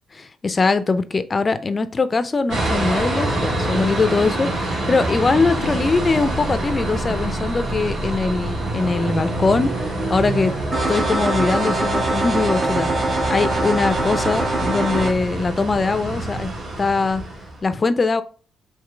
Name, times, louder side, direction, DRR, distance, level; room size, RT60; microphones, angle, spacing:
voice 1, 0.1-10.5 10.9-16.5 16.8-17.2 17.6-18.2, left 4 dB, 30° left, 0.4 m, -22 dB
sound 1, 2.5-17.6, right 2 dB, 90° right, 1.9 m, -26 dB
sound 2, 10.7-15.1, right 2 dB, 55° right, 1.3 m, -22 dB
4.9 x 3.1 x 3.3 m
cardioid pair, 90°, 0 cm